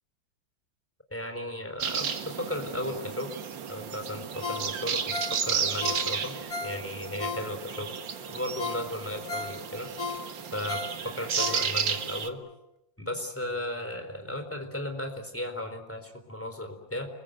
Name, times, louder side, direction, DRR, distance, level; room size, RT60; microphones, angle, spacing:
voice 1, 1.1-3.3 3.7-6.3 6.6-7.9 8.3-9.9 10.5-12.4 13.0-17.1, left 1 dB, 5° left, 5 dB, 4.0 m, -35 dB
sound 1, 1.8-12.3, right 7 dB, 75° right, 2.2 m, -33 dB
Ringtone, 4.4-7.9 8.3-8.4 8.6-12.0 12.4-12.5, left 4 dB, 50° left, 2.8 m, -36 dB
29.5 x 22.0 x 8.0 m, 0.88 s
omnidirectional pair, 2.1 m